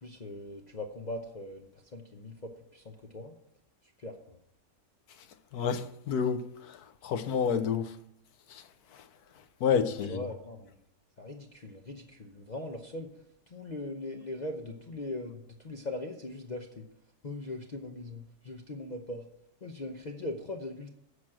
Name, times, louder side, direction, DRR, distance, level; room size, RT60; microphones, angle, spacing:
voice 1, 0.0-3.3 4.0-4.4 10.1-10.7 11.2-13.1 13.5-16.9 17.2-19.2 19.6-20.9, left 2 dB, 35° left, 0.8 m, -40 dB
voice 2, 5.5-6.4 6.7-6.8 7.0-7.9 8.5-8.6 9.6-10.2, left 7 dB, 85° left, 1.3 m, -29 dB
8.2 x 6.2 x 7.4 m
omnidirectional pair, 1.6 m